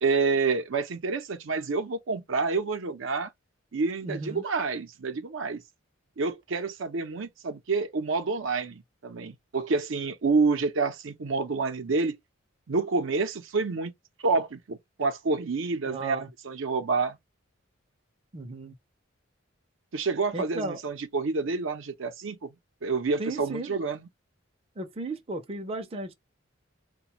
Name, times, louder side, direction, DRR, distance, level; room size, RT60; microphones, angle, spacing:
voice 1, 0.0-3.3 3.7-5.6 6.2-12.1 12.7-13.9 14.2-17.2 19.9-22.5 22.8-24.1, right 4 dB, 70° right, 0.6 m, -28 dB
voice 2, 4.0-4.4 15.9-16.3 18.3-18.7 20.3-20.8 23.2-23.8 24.8-26.1, right 2 dB, 30° right, 0.5 m, -35 dB
4.0 x 2.2 x 2.9 m
head